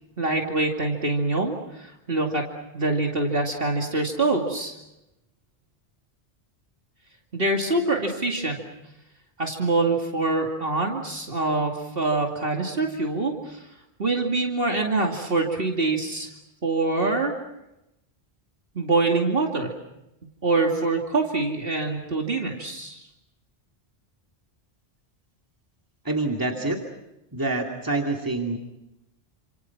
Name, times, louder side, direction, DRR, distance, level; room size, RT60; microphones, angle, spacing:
voice 1, 0.2-4.7 7.3-8.6 9.4-13.6 14.0-16.3 16.6-17.3 18.7-19.7 20.4-23.0, right 3 dB, 60° right, 1 dB, 2.7 m, -25 dB
voice 2, 26.0-26.8 27.3-28.6, right 2 dB, 20° right, 1 dB, 2.7 m, -26 dB
29.5 x 27.0 x 6.0 m, 0.91 s
omnidirectional pair, 1.1 m